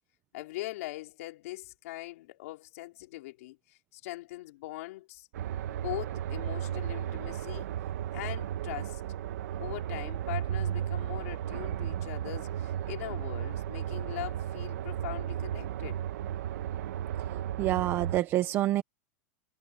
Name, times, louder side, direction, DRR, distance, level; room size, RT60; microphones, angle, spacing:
voice 1, 0.3-5.3 5.7-7.7 8.1-9.0 9.6-16.0, left 19 dB, 60° left, 4.7 m, -41 dB
sound 1, 5.3-18.2, right 10 dB, 70° right, 1.6 m, -34 dB
voice 2, 17.6-18.8, right 14 dB, 25° right, 0.8 m, -27 dB
supercardioid pair, 170°, 9 cm